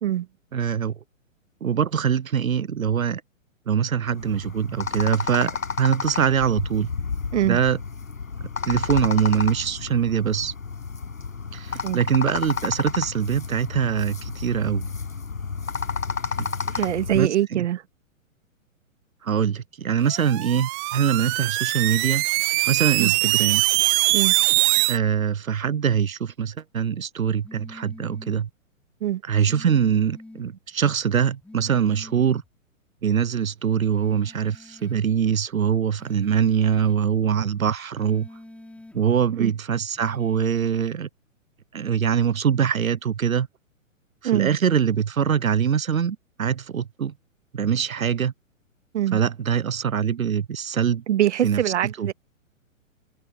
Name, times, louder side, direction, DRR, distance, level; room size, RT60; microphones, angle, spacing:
voice 1, 0.5-1.0 1.6-3.2 3.7-6.9 7.4-7.8 8.7-10.5 11.5-14.9 16.4-16.5 16.7-16.9 17.1-17.6 19.2-22.2 22.7-23.6 24.9-28.5 29.2-32.4 33.0-38.3 38.9-41.1 41.7-43.5 44.2-47.1 47.5-48.3 49.1-51.0 51.4-52.1, right 8 dB, 85° right, 1.0 m, -23 dB
sound 1, 4.1-17.3, left 5 dB, 85° left, 6.9 m, -31 dB
voice 2, 16.7-17.8 23.0-23.1 24.1-24.3 29.0-29.2 39.4-39.5 44.2-44.5 48.9-49.2 51.1-52.1, right 12 dB, 60° right, 2.0 m, -23 dB
sound 2, 20.1-25.0, right 26 dB, 30° right, 1.5 m, -22 dB
sound 3, 27.4-28.5 29.4-30.5 31.4-32.5 33.9-35.0 35.9-37.0 37.9-39.0 39.9-41.0, left 1 dB, 5° left, 5.4 m, -45 dB
figure-of-eight pair, 120°, 40 cm